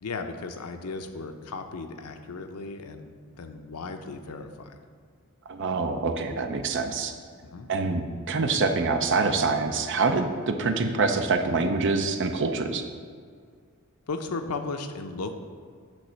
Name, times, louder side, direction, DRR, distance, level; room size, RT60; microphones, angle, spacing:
voice 1, 0.0-4.8 7.4-7.7 10.7-10.8 14.1-15.3, left 3 dB, 85° left, 7 dB, 0.7 m, -36 dB
voice 2, 5.5-7.1 7.7-12.8, right 4 dB, 55° right, 7 dB, 0.6 m, -25 dB
8.6 x 3.3 x 6.3 m, 2.1 s
head